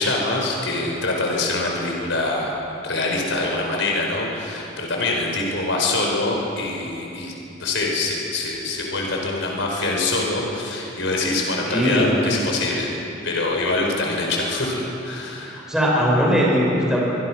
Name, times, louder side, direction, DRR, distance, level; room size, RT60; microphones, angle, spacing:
voice 1, 0.0-2.5 2.8-7.3 7.6-12.9 13.2-15.7, left 2 dB, 75° left, 0 dB, 5.2 m, -24 dB
voice 2, 11.6-12.2 15.5-17.0, equal, 5° right, -5 dB, 5.7 m, -20 dB
26.0 x 23.0 x 6.3 m, 2.8 s
head